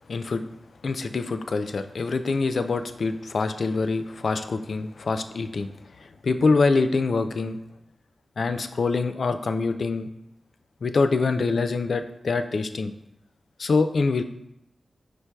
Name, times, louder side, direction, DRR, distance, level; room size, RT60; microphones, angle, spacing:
voice 1, 0.1-0.4 0.8-5.7 6.2-7.6 8.4-10.1 10.8-12.9 13.6-14.2, left 4 dB, 70° left, 9 dB, 0.3 m, -25 dB
5.0 x 4.6 x 2.2 m, 0.82 s
cardioid pair, 50°, 0 cm